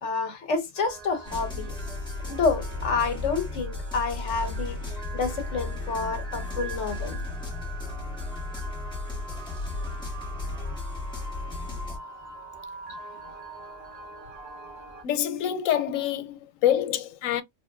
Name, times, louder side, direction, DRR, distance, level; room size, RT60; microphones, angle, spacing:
voice 1, 0.0-1.7 2.3-4.8 5.1-7.3, left 4 dB, 65° left, 1.2 m, -28 dB
sound 1, 0.8-15.0, right 3 dB, 55° right, 1.2 m, -43 dB
sound 2, 1.2-12.0, left 3 dB, 5° left, 1.5 m, -34 dB
voice 2, 15.0-17.4, left 11 dB, 90° left, 1.0 m, -26 dB
4.2 x 2.8 x 2.3 m
omnidirectional pair, 1.3 m